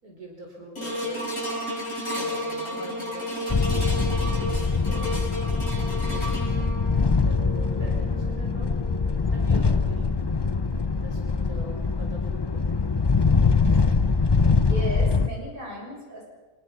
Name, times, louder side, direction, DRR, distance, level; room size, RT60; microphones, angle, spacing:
voice 1, 0.0-1.3 2.1-3.3 3.7-5.3 6.1-6.6 7.2-8.7 9.3-10.1 10.9-12.7, right 1 dB, 85° right, 0 dB, 5.0 m, -43 dB
sound 1, 0.8-11.2 11.7-11.8, equal, 55° left, 6.2 m, -34 dB
sound 2, 3.5-15.3, left 4 dB, 35° left, 0.4 m, -23 dB
voice 2, 14.6-16.2, right 1 dB, 35° right, -2 dB, 7.0 m, -35 dB
26.0 x 20.5 x 5.8 m, 1.2 s
omnidirectional pair, 1.5 m